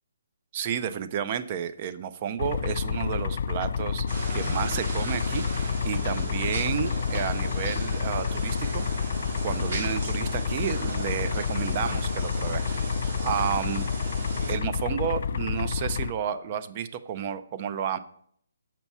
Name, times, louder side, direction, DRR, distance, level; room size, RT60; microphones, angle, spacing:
voice 1, 0.5-4.0 4.3-8.8 9.4-12.9 13.2-13.9 14.5-18.0, right 8 dB, 25° right, 12 dB, 0.4 m, -31 dB
sound 1, 2.4-16.1, left 6 dB, 45° left, 0.3 m, -29 dB
sound 2, 4.1-14.5, right 2 dB, 50° right, 2.4 m, -36 dB
7.0 x 5.9 x 5.4 m, 0.65 s
hypercardioid pair, 175°, 0 cm